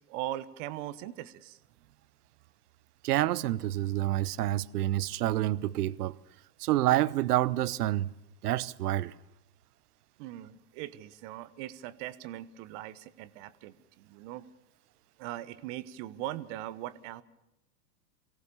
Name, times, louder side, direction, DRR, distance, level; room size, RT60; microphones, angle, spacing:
voice 1, 0.0-1.6 10.2-14.4 15.2-17.2, right 14 dB, 45° right, 1.2 m, -40 dB
voice 2, 3.0-6.1 6.6-8.1 8.4-9.1, right 14 dB, 65° right, 0.9 m, -28 dB
23.5 x 17.5 x 7.0 m
hypercardioid pair, 105°, 50 cm